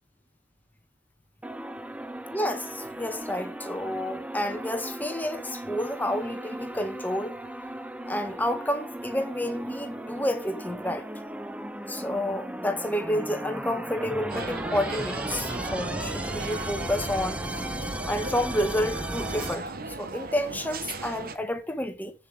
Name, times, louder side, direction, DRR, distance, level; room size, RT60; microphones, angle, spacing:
sound 1, 1.4-19.5, right 1 dB, 5° right, 0.5 m, -36 dB
voice 1, 2.3-7.4 8.1-11.1 11.9-17.6 18.1-19.7 20.0-22.1, left 1 dB, 10° left, 1.2 m, -30 dB
sound 2, 14.3-21.4, right 3 dB, 50° right, 1.0 m, -37 dB
7.7 x 7.2 x 3.4 m
head